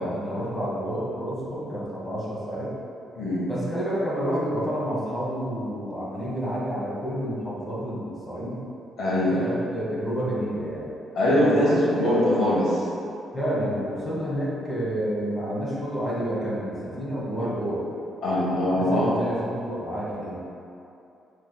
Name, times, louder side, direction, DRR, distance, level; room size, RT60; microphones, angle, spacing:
voice 1, 0.0-2.7 3.5-8.6 9.4-10.9 11.4-12.1 13.3-17.9 18.7-20.4, equal, 20° left, -7 dB, 1.4 m, -29 dB
voice 2, 3.2-3.5 9.0-9.4 11.1-12.8 18.2-19.1, left 1 dB, 70° left, -7 dB, 1.2 m, -22 dB
7.2 x 3.2 x 2.2 m, 2.7 s
cardioid pair, 90°, 0 cm